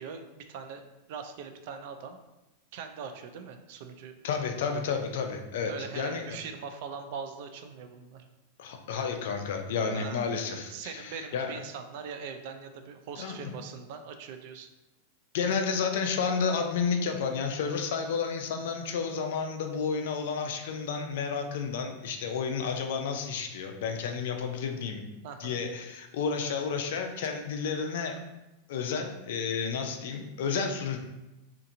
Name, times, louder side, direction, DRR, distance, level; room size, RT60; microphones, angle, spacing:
voice 1, 0.0-2.2 2.7-4.1 5.7-8.2 9.9-10.3 10.7-14.7 25.2-25.6, right 6 dB, 65° right, 7 dB, 0.3 m, -41 dB
voice 2, 4.2-6.2 8.6-11.6 13.2-13.5 15.3-25.0 25.4-28.2 28.7-31.0, left 5 dB, 70° left, 4 dB, 0.4 m, -31 dB
2.7 x 2.5 x 2.5 m, 0.97 s
hypercardioid pair, 125°, 0 cm